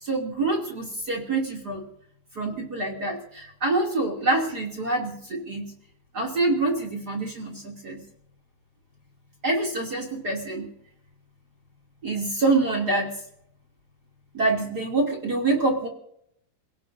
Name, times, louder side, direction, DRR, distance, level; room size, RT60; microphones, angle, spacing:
voice 1, 0.0-1.8 2.3-5.7 6.1-8.0 9.4-10.7 12.0-13.1 14.3-15.9, right 2 dB, 30° right, 0 dB, 2.6 m, -26 dB
28.5 x 17.5 x 2.7 m, 0.73 s
omnidirectional pair, 4.7 m